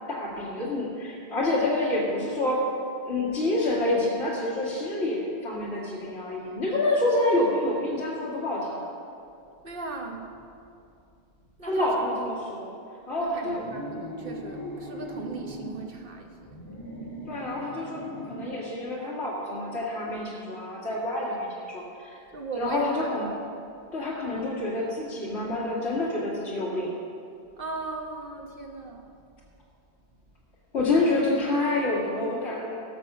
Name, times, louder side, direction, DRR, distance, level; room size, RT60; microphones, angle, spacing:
voice 1, 0.1-2.7 3.0-8.9 11.6-12.8 13.1-13.6 17.3-22.2 22.5-23.3 23.9-26.9 30.7-32.8, left 2 dB, 75° left, -7 dB, 2.2 m, -27 dB
voice 2, 9.6-10.3 11.6-12.1 13.2-16.6 22.3-23.3 27.6-29.1, right 3 dB, 55° right, 2 dB, 1.3 m, -38 dB
sound 1, 13.5-15.8 16.4-18.6, equal, 55° left, 3.8 m, -39 dB
17.5 x 6.7 x 6.0 m, 2.6 s
omnidirectional pair, 1.1 m